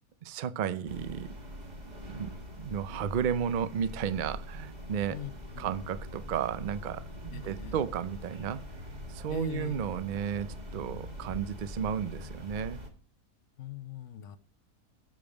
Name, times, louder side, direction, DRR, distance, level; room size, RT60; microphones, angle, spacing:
voice 1, 0.2-1.3 2.1-5.2 5.6-8.6 9.1-12.8, right 8 dB, 60° right, 0.5 m, -33 dB
sound 1, 0.9-12.9, equal, 30° right, 1.7 m, -43 dB
voice 2, 5.1-5.7 7.3-7.7 9.3-9.8 13.6-14.4, left 11 dB, 60° left, 1.1 m, -41 dB
12.5 x 5.3 x 5.1 m
omnidirectional pair, 1.6 m